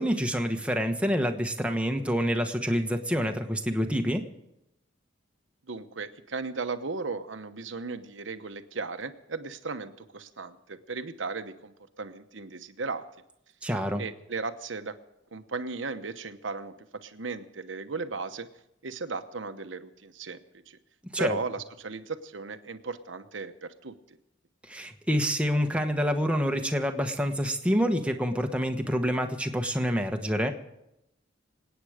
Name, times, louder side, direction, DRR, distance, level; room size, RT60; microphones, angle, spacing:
voice 1, 0.0-4.3 13.6-14.0 21.1-21.3 24.7-30.5, equal, 5° right, 4 dB, 1.2 m, -27 dB
voice 2, 5.7-13.0 14.0-14.9 15.3-18.5 18.8-20.4 20.7-20.8 21.2-24.2, right 4 dB, 85° right, 9 dB, 1.0 m, -36 dB
26.5 x 9.2 x 5.0 m, 0.86 s
head